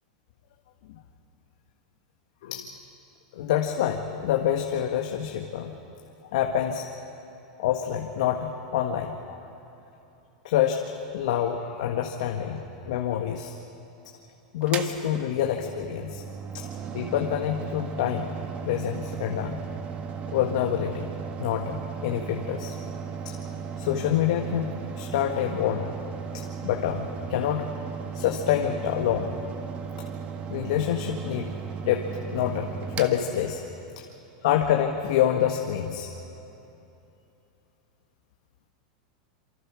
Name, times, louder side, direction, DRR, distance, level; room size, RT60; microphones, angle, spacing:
voice 1, 3.3-5.8 6.3-6.9 7.6-9.4 10.4-10.8 11.1-13.6 14.5-16.2 16.5-16.6 16.9-18.3 18.6-19.6 20.3-21.1 21.4-22.8 23.3-23.4 23.8-25.9 26.3-27.7 28.1-29.3 30.0-30.1 30.5-31.5 31.8-32.7 33.0-33.6 34.0-34.1 34.4-36.1, left 10 dB, 70° left, 3 dB, 1.6 m, -27 dB
Mechanical fan, 14.6-34.0, right 6 dB, 35° right, 1.7 m, -36 dB
27.5 x 24.5 x 6.3 m, 2.9 s
supercardioid pair, 130°, 4 cm